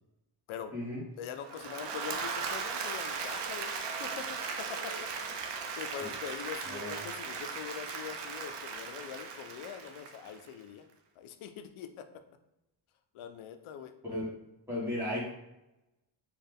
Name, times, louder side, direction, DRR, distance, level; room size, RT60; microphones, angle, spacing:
voice 1, 1.2-3.7 4.0-10.9 11.2-12.1 13.1-13.9, left 8 dB, 80° left, 8 dB, 0.5 m, -43 dB
Applause / Crowd, 1.4-10.5, right 5 dB, 60° right, 0.6 m, -38 dB
voice 2, 6.7-7.0 14.0-14.3 14.7-15.3, left 1 dB, 5° right, -8 dB, 1.4 m, -35 dB
4.2 x 2.4 x 3.4 m, 0.90 s
wide cardioid pair, 175°, 48 cm